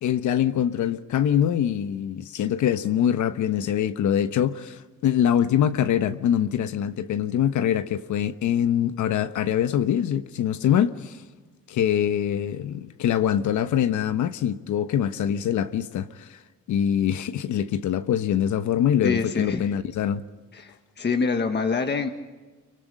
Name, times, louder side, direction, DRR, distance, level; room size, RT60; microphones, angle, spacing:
voice 1, 0.0-11.2 11.7-16.4 16.7-20.2, left 9 dB, 75° left, 1.1 m, -24 dB
voice 2, 19.0-19.6 20.5-22.1, left 5 dB, 35° left, 1.6 m, -25 dB
27.0 x 24.5 x 5.5 m
cardioid pair, 90°, 30 cm